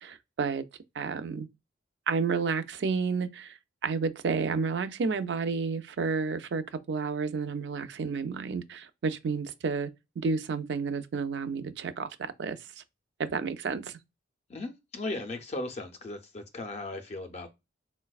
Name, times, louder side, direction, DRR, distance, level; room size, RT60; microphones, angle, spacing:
voice 1, 0.0-0.6 1.0-1.5 2.1-9.9 10.2-12.6 13.2-14.0, right 5 dB, 65° right, 0.4 m, -31 dB
voice 2, 14.5-17.5, left 2 dB, 35° left, 0.4 m, -37 dB
3.9 x 2.1 x 2.3 m
head